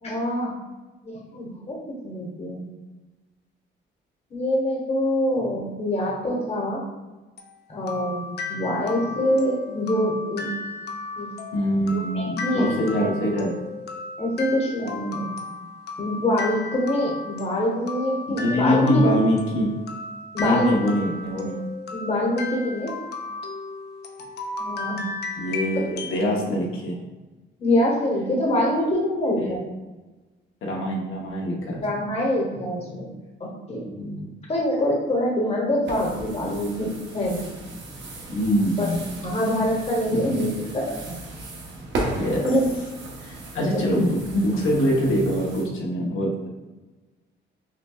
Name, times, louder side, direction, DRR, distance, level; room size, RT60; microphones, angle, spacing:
voice 1, 0.0-0.6 1.0-2.6 4.3-6.8 7.7-10.5 11.2-11.3 11.9-13.1 14.2-15.3 16.0-19.0 20.3-20.8 21.9-22.9 24.6-25.0 27.6-29.6 31.8-33.1 33.4-33.9 34.5-37.4 38.8-38.9 39.2-40.5 40.7-41.2 42.4-42.6 43.5-43.9, left 1 dB, 30° left, -2 dB, 0.9 m, -25 dB
sound 1, 7.4-26.3, left 3 dB, 55° left, 0.5 m, -35 dB
voice 2, 11.5-13.6 18.3-19.8 20.4-21.6 25.4-27.0 29.3-29.6 30.6-31.8 33.8-34.3 38.3-39.2 40.1-40.4 42.1-42.4 43.2-46.5, equal, 80° left, -2 dB, 0.8 m, -24 dB
sound 2, 35.9-45.6, right 2 dB, 65° right, 0.9 m, -36 dB
5.7 x 2.2 x 2.2 m, 1.2 s
cardioid pair, 135°, 20 cm